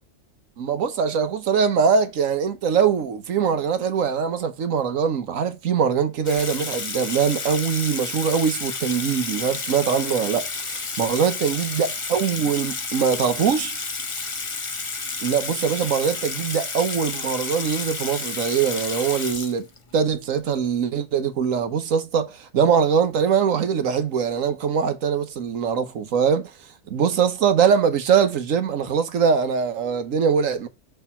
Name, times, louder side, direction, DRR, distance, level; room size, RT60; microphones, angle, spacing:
voice 1, 0.6-13.8 15.2-19.6 19.9-26.5 26.9-30.7, right 7 dB, 85° right, 1.4 m, -22 dB
Water tap faucet / Sink (filling or washing), 6.3-20.0, left 4 dB, 30° left, 0.7 m, -31 dB
6.7 x 3.5 x 5.5 m
omnidirectional pair, 1.4 m